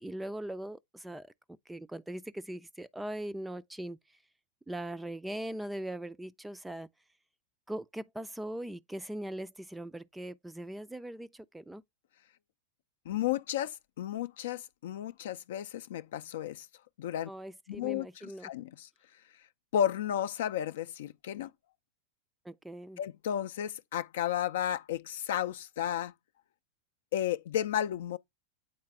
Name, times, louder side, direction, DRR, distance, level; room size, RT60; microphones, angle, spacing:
voice 1, 0.0-1.3 1.7-4.0 4.7-6.9 7.7-11.8 17.3-18.5 22.4-23.0, right 1 dB, 5° right, 0.4 m, -40 dB
voice 2, 13.1-16.7 17.0-17.3 17.7-18.1 18.4-18.9 19.7-21.5 23.0-26.1 27.1-28.2, left 10 dB, 55° left, 0.4 m, -33 dB
8.5 x 4.0 x 3.4 m
figure-of-eight pair, 90°, 0 cm